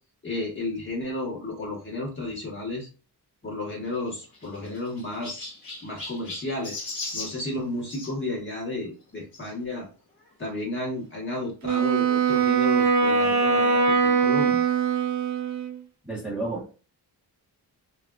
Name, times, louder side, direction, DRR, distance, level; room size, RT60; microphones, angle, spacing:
voice 1, 0.2-2.9 3.4-5.5 5.8-6.8 7.1-9.9 10.4-14.7, left 2 dB, 30° left, -4 dB, 1.1 m, -32 dB
Chirp tweet, 3.8-8.1 9.3-9.5 10.2-10.3 10.5-10.6 11.9-12.0, left 2 dB, 50° left, 1.4 m, -38 dB
Wind instrument woodwind instrument, 11.6-15.8, right 5 dB, 45° right, 0.5 m, -22 dB
voice 2, 16.0-16.8, right 2 dB, 5° right, -6 dB, 1.0 m, -31 dB
3.3 x 2.4 x 2.3 m, 0.34 s
wide cardioid pair, 135°, 40 cm